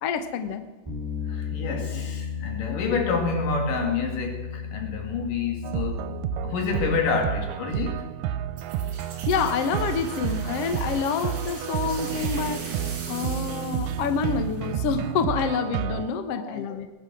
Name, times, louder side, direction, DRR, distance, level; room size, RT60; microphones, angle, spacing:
voice 1, 0.0-0.6 9.3-16.9, left 6 dB, 60° left, 8 dB, 1.7 m, -28 dB
Bass guitar, 0.9-7.1, left 7 dB, 10° right, 4.6 m, -34 dB
voice 2, 1.3-6.0 6.4-8.1 16.3-16.8, left 4 dB, 80° left, 3 dB, 3.8 m, -28 dB
sound 1, 5.6-16.1, right 10 dB, 90° right, 2.3 m, -30 dB
sound 2, 8.6-15.2, right 4 dB, 60° right, 4.0 m, -40 dB
21.0 x 10.0 x 6.1 m, 1.3 s
omnidirectional pair, 3.8 m